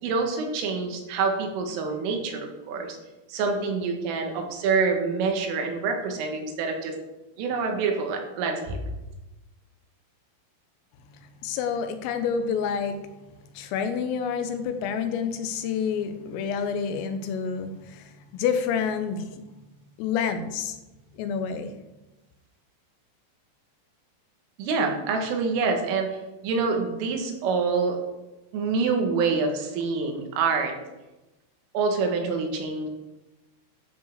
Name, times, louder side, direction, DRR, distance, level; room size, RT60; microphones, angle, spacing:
voice 1, 0.0-3.0 3.3-6.9 7.4-8.8 24.6-26.1 26.4-28.0 28.5-30.7 31.7-32.9, right 4 dB, 80° right, 3 dB, 4.4 m, -26 dB
voice 2, 11.4-13.0 13.6-19.3 20.0-20.8 21.2-21.7, left 6 dB, 85° left, 8 dB, 3.7 m, -28 dB
13.0 x 7.6 x 6.6 m, 1.0 s
omnidirectional pair, 5.8 m